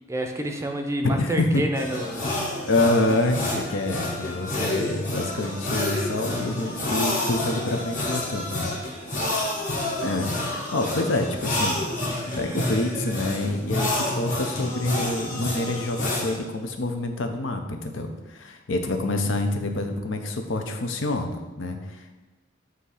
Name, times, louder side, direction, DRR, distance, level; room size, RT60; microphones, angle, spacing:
voice 1, 0.1-2.3 9.1-9.4, right 1 dB, 15° right, 4 dB, 0.5 m, -29 dB
voice 2, 1.0-1.6 2.7-8.7 10.0-11.9 12.4-22.2, left 2 dB, 75° left, 5 dB, 0.7 m, -27 dB
sound 1, 1.7-16.4, left 1 dB, 45° left, 1.3 m, -29 dB
7.9 x 2.8 x 4.8 m, 1.2 s
head